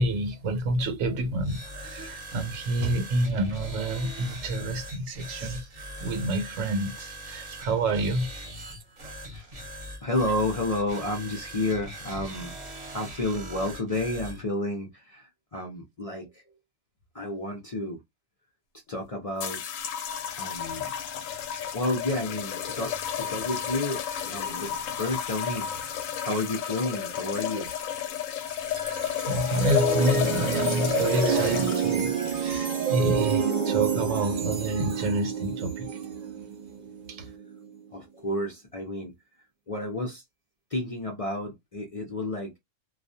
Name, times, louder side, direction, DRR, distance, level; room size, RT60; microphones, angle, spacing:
voice 1, 0.0-8.7 9.0-9.1 28.9-36.1 37.1-37.3, right 1 dB, 85° right, 1.1 m, -29 dB
sound 1, 1.3-14.4, equal, 35° right, 0.8 m, -41 dB
voice 2, 10.0-12.5 12.9-15.2 15.5-16.3 17.1-18.0 18.9-19.6 20.4-20.8 21.7-25.7 26.2-27.7 37.9-39.1 39.7-40.2 40.7-42.5, left 2 dB, 45° left, 0.5 m, -31 dB
sound 2, 19.4-33.7, left 9 dB, 85° left, 1.0 m, -32 dB
sound 3, 28.5-37.8, right 6 dB, 55° right, 0.5 m, -29 dB
2.3 x 2.2 x 2.6 m
omnidirectional pair, 1.3 m